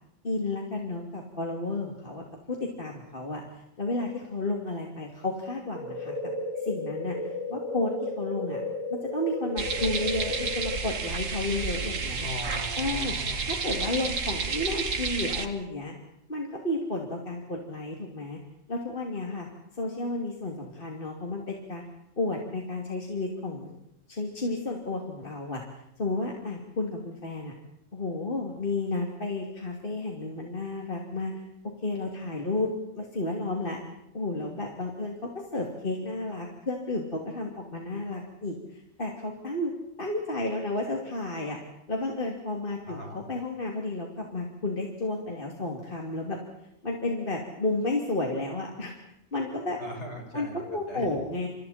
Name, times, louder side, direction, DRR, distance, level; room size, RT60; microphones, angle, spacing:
voice 1, 0.2-2.2 2.5-3.4 3.8-6.3 6.6-7.1 7.5-8.6 8.9-12.3 12.8-13.2 13.4-15.9 16.3-18.4 18.7-19.5 19.7-21.8 22.2-23.7 24.1-25.6 26.0-27.5 27.9-31.4 31.8-32.7 33.0-33.8 34.1-39.7 40.0-41.6 41.9-46.4 46.8-48.9 49.3-49.8 50.3-51.5, left 2 dB, 45° left, 0 dB, 3.0 m, -32 dB
sound 1, 5.7-10.8, left 2 dB, 50° right, 4.3 m, -34 dB
sound 2, 9.6-15.5, right 5 dB, 75° right, 2.0 m, -31 dB
voice 2, 12.2-13.5 42.9-43.2 49.8-50.6 50.9-51.1, left 1 dB, 60° left, 1 dB, 5.6 m, -39 dB
29.5 x 28.5 x 4.3 m, 0.79 s
omnidirectional pair, 1.3 m